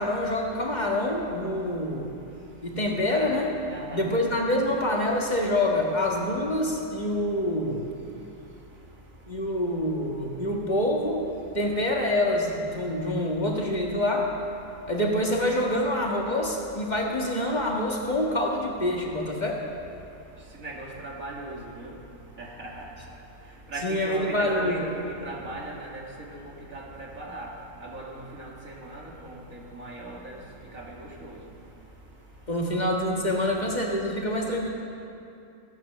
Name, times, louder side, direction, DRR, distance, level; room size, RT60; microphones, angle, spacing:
voice 1, 0.0-2.1 2.6-3.5 3.9-7.9 9.3-11.3 11.5-14.3 14.9-19.6 23.8-24.8 32.5-34.7, left 1 dB, 35° left, -1 dB, 1.6 m, -26 dB
voice 2, 3.7-4.1 20.6-21.9 22.4-22.9 23.7-24.9 25.2-26.4 26.7-27.5 27.8-30.3 30.7-31.4, right 2 dB, 85° right, -3 dB, 2.6 m, -38 dB
16.5 x 9.1 x 6.5 m, 2.7 s
omnidirectional pair, 1.4 m